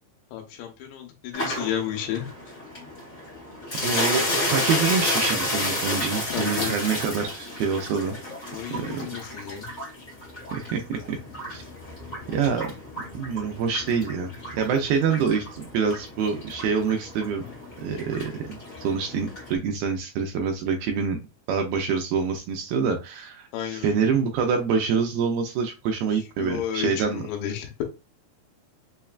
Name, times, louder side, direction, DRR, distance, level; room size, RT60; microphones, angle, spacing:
voice 1, 0.3-2.3 6.3-6.8 8.5-9.7 23.5-24.0 26.4-27.8, left 10 dB, 90° left, 3 dB, 2.9 m, -32 dB
sound 1, 1.3-19.5, left 1 dB, 75° left, 0.7 m, -32 dB
voice 2, 3.7-8.2 8.7-9.0 10.5-11.2 11.5-11.6 12.3-12.7 13.1-17.4 17.8-18.4 18.8-21.2 21.5-27.2, right 6 dB, 80° right, 3 dB, 2.2 m, -26 dB
6.2 x 2.2 x 2.3 m, 0.28 s
omnidirectional pair, 4.7 m